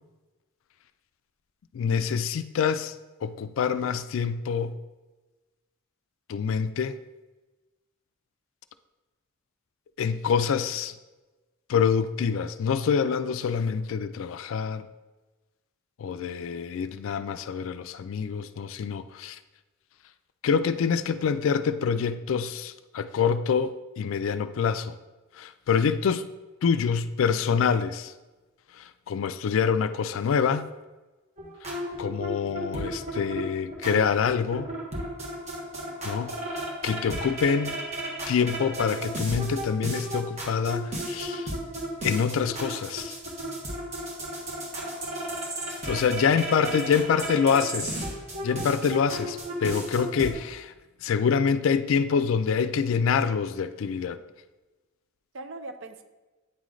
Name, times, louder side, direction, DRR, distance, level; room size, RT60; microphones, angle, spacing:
voice 1, 1.7-3.0 3.2-4.8 6.3-7.0 10.0-10.9 11.7-14.9 16.0-19.4 20.4-24.9 25.4-26.3 26.6-28.1 28.7-30.7 32.0-34.7 36.0-37.8 38.3-41.5 42.0-43.2 45.8-48.0 48.4-50.7 51.0-54.2, left 6 dB, 65° left, 12 dB, 0.3 m, -26 dB
sound 1, 31.4-50.3, right 1 dB, 30° right, 1.3 m, -34 dB
voice 2, 46.6-47.5 55.3-56.0, right 4 dB, 60° right, 8 dB, 0.5 m, -40 dB
9.1 x 3.1 x 3.8 m, 1.2 s
head